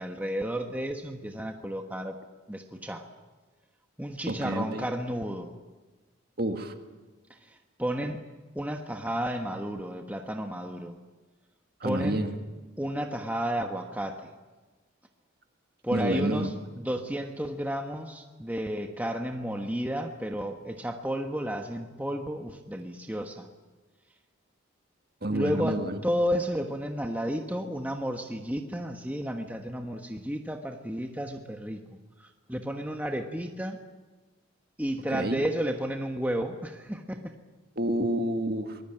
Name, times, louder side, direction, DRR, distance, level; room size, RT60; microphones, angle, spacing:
voice 1, 0.0-2.2 2.5-3.1 4.0-5.5 7.3-8.2 8.5-11.0 11.8-12.2 12.8-14.3 15.8-23.5 25.3-31.8 32.2-33.8 34.8-37.3, equal, 10° right, 4 dB, 1.3 m, -32 dB
voice 2, 4.3-4.9 6.4-6.7 11.8-12.4 15.9-16.5 25.2-26.0 35.1-35.4 37.8-38.8, right 1 dB, 45° right, 6 dB, 2.0 m, -29 dB
24.0 x 20.5 x 9.0 m, 1.3 s
head